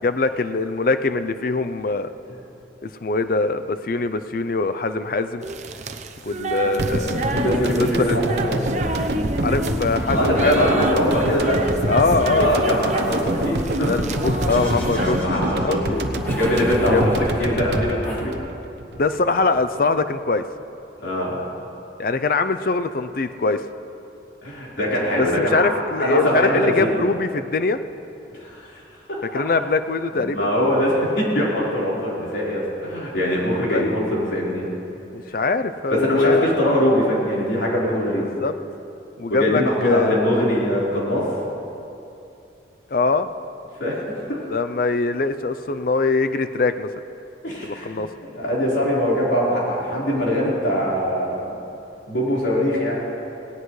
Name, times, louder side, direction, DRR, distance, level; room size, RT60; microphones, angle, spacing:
voice 1, 0.0-2.1 3.0-5.4 6.2-8.2 9.4-10.7 11.9-12.6 13.9-16.0 16.9-17.1 18.9-20.4 22.0-23.6 25.2-27.8 29.2-30.5 33.7-33.8 35.1-36.5 38.2-38.5 39.2-40.2 42.9-43.3 44.5-46.9 47.6-48.1, left 3 dB, 50° left, 10 dB, 0.5 m, -22 dB
sound 1, 5.4-15.2, right 2 dB, 40° right, 0.7 m, -29 dB
sound 2, 6.8-19.1 19.4-19.5, right 1 dB, 65° right, 0.9 m, -26 dB
voice 2, 7.2-8.6 10.1-11.6 12.4-13.9 14.9-16.0 16.3-17.1 17.4-18.4 21.0-21.4 24.4-25.7 26.0-26.9 28.3-28.8 30.1-34.7 35.9-38.3 39.3-41.3 43.8-44.4 47.4-48.0 48.3-51.6 52.1-53.0, equal, 85° left, -6 dB, 4.2 m, -22 dB
sound 3, 9.4-18.2, left 1 dB, 15° left, 4.0 m, -33 dB
18.5 x 18.0 x 3.2 m, 2.8 s
head